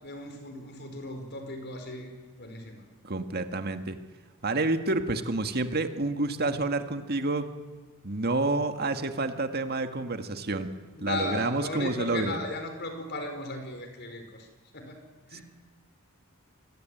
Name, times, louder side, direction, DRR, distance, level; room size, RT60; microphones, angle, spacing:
voice 1, 0.0-2.9 10.9-14.5 14.7-15.4, left 2 dB, 50° left, 6 dB, 5.1 m, -37 dB
voice 2, 3.0-4.0 4.4-7.5 8.0-10.7 11.0-12.4 15.3-15.4, right 2 dB, 45° right, 8 dB, 1.9 m, -29 dB
28.0 x 21.0 x 9.3 m, 1.3 s
head